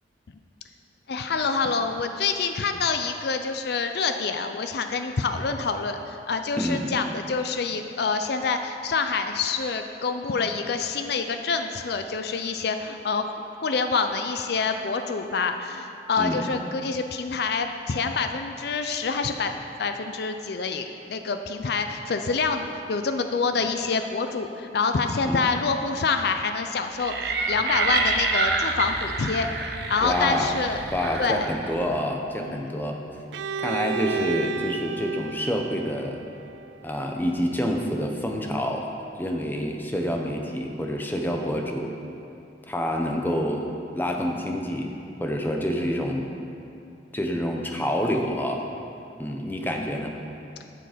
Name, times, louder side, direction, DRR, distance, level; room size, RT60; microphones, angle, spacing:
voice 1, 1.1-13.3 13.6-29.5 29.9-30.8 31.2-31.5 32.4-32.7, left 4 dB, 60° left, 7 dB, 0.5 m, -27 dB
voice 2, 6.6-6.9 16.2-16.4 25.2-25.5 30.0-30.5 30.9-33.0 33.6-36.2 36.8-38.9 39.2-41.9 42.6-43.7 43.9-46.3 47.1-48.6 49.2-50.2, equal, 10° left, 1 dB, 0.8 m, -27 dB
sound 1, 27.0-31.8, right 3 dB, 65° right, 0.9 m, -27 dB
Bowed string instrument, 33.3-37.1, right 6 dB, 85° right, 0.3 m, -33 dB
11.5 x 6.8 x 5.1 m, 2.7 s
head